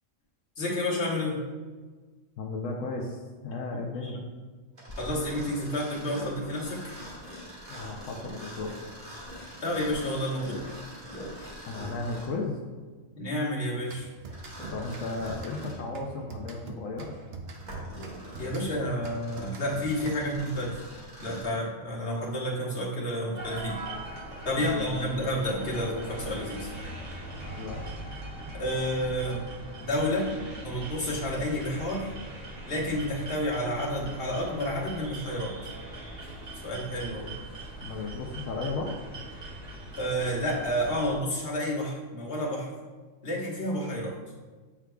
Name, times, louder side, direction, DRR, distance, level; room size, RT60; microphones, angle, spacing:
voice 1, 0.6-1.4 4.0-4.2 5.0-6.9 9.6-10.6 13.2-14.1 18.4-20.8 21.2-23.8 24.4-26.7 28.5-29.4 29.8-30.3 30.6-32.1 32.7-35.6 36.6-37.3 40.0-42.7 43.2-44.2, equal, 50° left, -5 dB, 1.5 m, -30 dB
voice 2, 2.4-4.2 7.7-8.9 11.7-12.6 14.7-17.2 24.6-25.1 27.6-27.8 37.8-39.0, left 3 dB, 85° left, -1 dB, 1.1 m, -35 dB
Mechanisms, 4.8-12.4 14.3-15.9 16.5-16.6 17.2-21.6, equal, 35° right, 1.9 m, -43 dB
sound 1, 13.9-20.5, right 3 dB, 60° right, 0.8 m, -44 dB
sound 2, 23.3-41.2, right 1 dB, 80° right, 1.7 m, -41 dB
8.6 x 4.8 x 2.3 m, 1.4 s
omnidirectional pair, 1.3 m